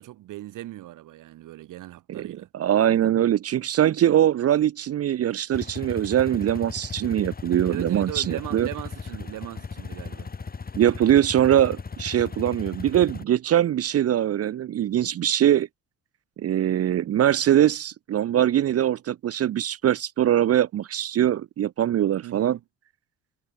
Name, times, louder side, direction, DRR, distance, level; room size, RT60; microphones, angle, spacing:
voice 1, 0.0-2.5 7.7-10.3 22.2-22.6, right 15 dB, 80° right, 2.8 m, -38 dB
voice 2, 2.5-8.7 10.8-15.7 16.4-22.6, right 11 dB, 50° right, 0.8 m, -22 dB
sound 1, 5.5-13.2, left 5 dB, 30° left, 3.4 m, -37 dB
cardioid pair, 100°, 31 cm